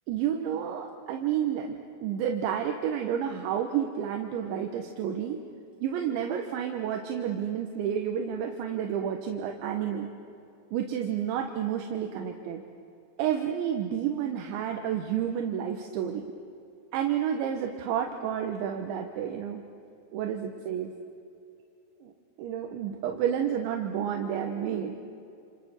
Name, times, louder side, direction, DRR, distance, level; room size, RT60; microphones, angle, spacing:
voice 1, 0.1-5.4 5.8-10.1 10.7-12.6 13.2-16.3 16.9-19.6 20.1-20.9 22.0-22.1 22.4-25.0, right 9 dB, 75° right, 3 dB, 3.5 m, -30 dB
29.0 x 28.5 x 6.3 m, 2.6 s
omnidirectional pair, 5.6 m